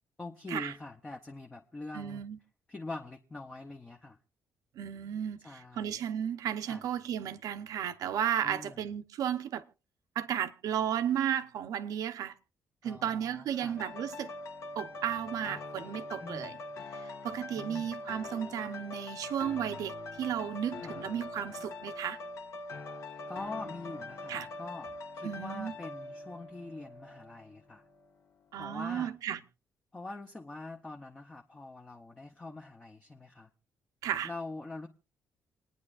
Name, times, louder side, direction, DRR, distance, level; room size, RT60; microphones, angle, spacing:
voice 1, 0.2-2.2 2.7-4.2 5.4-6.0 6.7-6.8 8.4-8.8 12.8-13.8 16.2-16.6 17.6-18.0 20.8-21.1 23.3-27.8 28.6-29.1 29.9-33.5 34.2-34.9, left 2 dB, 15° left, 0.7 m, -44 dB
voice 2, 1.9-2.4 4.8-9.6 10.1-12.3 12.8-14.3 14.8-16.6 17.2-22.2 24.3-24.5 25.2-25.7 28.5-29.4 34.0-34.3, right 9 dB, 70° right, 0.9 m, -34 dB
sound 1, 13.8-27.5 27.9-28.1, left 2 dB, 50° left, 1.3 m, -43 dB
28.0 x 9.7 x 2.5 m
cardioid pair, 180°, 6 cm